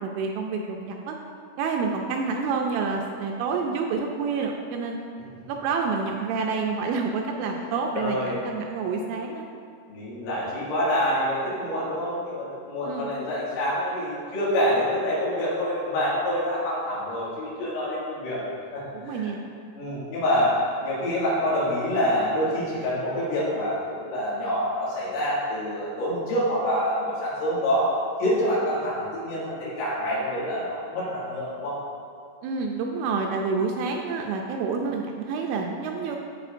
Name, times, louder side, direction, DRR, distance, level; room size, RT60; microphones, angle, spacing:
voice 1, 0.0-1.2 1.6-5.0 5.5-9.4 12.9-13.1 18.9-19.4 32.4-36.2, right 4 dB, 85° right, 2 dB, 2.7 m, -28 dB
voice 2, 7.5-8.5 9.9-18.4 18.7-19.3 19.8-27.9 28.2-31.7, equal, 80° left, -8 dB, 4.5 m, -26 dB
14.0 x 4.9 x 2.6 m, 2.3 s
omnidirectional pair, 5.5 m